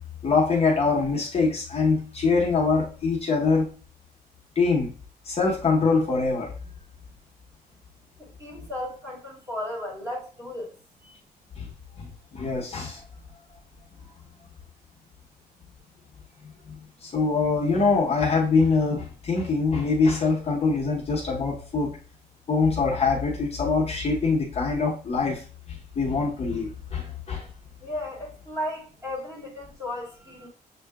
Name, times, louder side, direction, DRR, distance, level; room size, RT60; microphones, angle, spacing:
voice 1, 0.2-3.7 4.6-4.9 5.3-6.5 11.6-11.7 12.3-13.0 17.0-22.0 22.5-25.4 26.0-27.4, left 4 dB, 40° left, 0.9 m, -23 dB
voice 2, 8.2-10.7 11.0-11.2 27.8-30.5, left 1 dB, 20° right, 1.7 m, -35 dB
6.7 x 2.8 x 2.3 m
wide cardioid pair, 175°, 17 cm